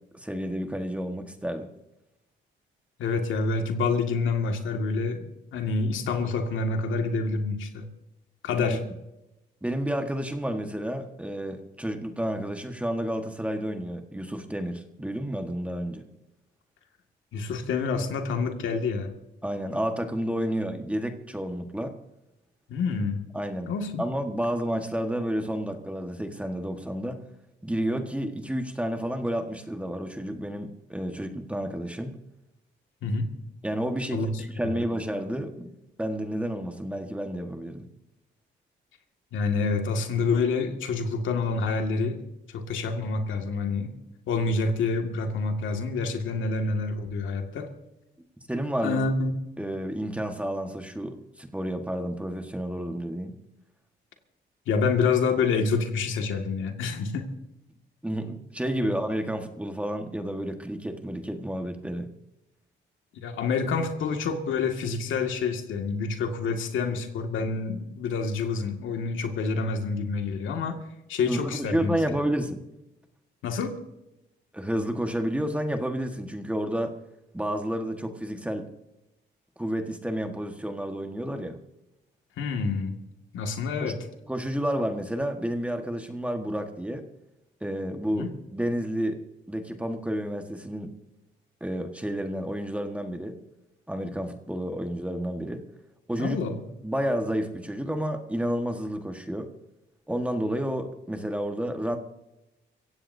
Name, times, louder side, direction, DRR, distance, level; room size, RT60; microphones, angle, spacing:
voice 1, 0.1-1.7 8.6-8.8 9.6-16.0 19.4-21.9 23.3-23.7 24.0-27.2 27.6-32.1 33.6-35.7 36.0-37.9 48.2-49.0 49.6-53.3 58.0-62.1 71.3-72.6 74.5-76.9 77.3-78.7 79.6-81.6 83.8-84.0 84.3-87.0 87.6-89.2 89.5-90.9 91.6-93.4 93.9-95.6 96.1-96.4 96.8-99.5 100.1-102.0, equal, 5° right, 5 dB, 1.5 m, -30 dB
voice 2, 3.0-7.9 8.4-8.8 17.3-19.1 22.7-23.2 23.7-24.1 33.0-33.3 34.1-34.3 34.6-34.8 39.3-42.2 42.5-44.0 44.3-47.7 48.8-49.3 54.7-57.3 58.8-58.9 63.2-70.8 71.1-71.9 73.4-73.8 82.4-83.0 83.3-84.0 88.1-88.3 96.2-96.7, left 4 dB, 75° left, 3 dB, 2.1 m, -27 dB
24.5 x 16.0 x 2.7 m, 0.93 s
cardioid pair, 90°, 20 cm